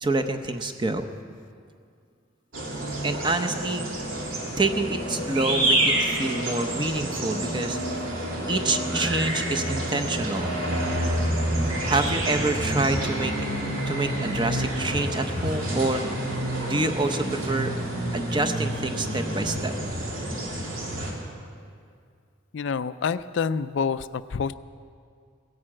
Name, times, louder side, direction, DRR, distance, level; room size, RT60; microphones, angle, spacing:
voice 1, 0.0-1.1 3.0-3.9 4.6-7.8 8.5-10.6 11.8-13.5 13.9-16.3 16.7-17.7 18.1-19.7, right 2 dB, 20° right, 7 dB, 0.7 m, -27 dB
sound 1, 2.5-21.1, right 1 dB, 80° right, 2.7 m, -28 dB
voice 2, 22.5-24.5, left 6 dB, 60° left, 13 dB, 0.4 m, -27 dB
16.5 x 11.0 x 7.6 m, 2.2 s
head